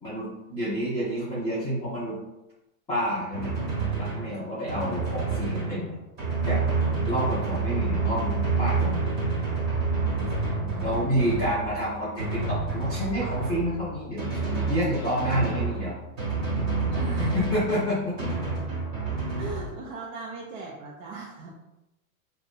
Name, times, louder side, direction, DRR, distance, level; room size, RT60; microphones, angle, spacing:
voice 1, 0.0-2.2 2.9-3.5 4.0-5.9 6.4-6.6 7.0-9.0 10.8-14.3 14.7-16.0 17.2-18.2, equal, 10° left, -14 dB, 0.4 m, -29 dB
Drum, 3.3-19.7, right 3 dB, 40° right, 1.2 m, -28 dB
voice 2, 10.6-11.4 16.9-17.6 19.4-21.5, right 4 dB, 60° right, -3 dB, 0.6 m, -39 dB
2.6 x 2.2 x 2.4 m, 0.93 s
supercardioid pair, 155°, 44 cm